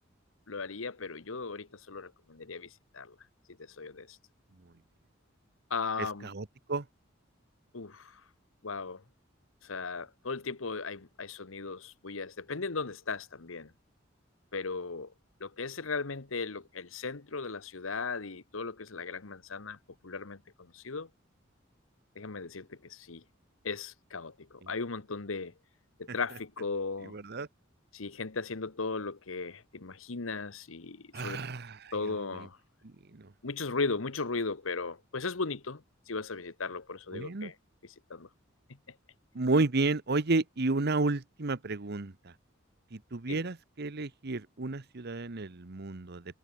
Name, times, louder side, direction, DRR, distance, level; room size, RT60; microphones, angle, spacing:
voice 1, 0.5-3.1 3.6-4.2 5.7-6.3 7.7-8.2 8.6-9.0 9.6-13.7 14.5-15.1 15.4-19.8 20.0-20.4 20.7-21.1 22.1-23.2 23.6-25.5 26.0-27.2 27.9-31.4 31.9-32.6 33.4-37.5 37.8-38.3 38.9-39.0 43.3-43.4, left 4 dB, 85° left, 1.2 m, -37 dB
voice 2, 6.2-6.8 27.1-27.5 31.1-31.9 33.1-33.3 37.1-37.5 39.3-42.1 42.9-46.4, right 3 dB, 55° right, 1.0 m, -31 dB
head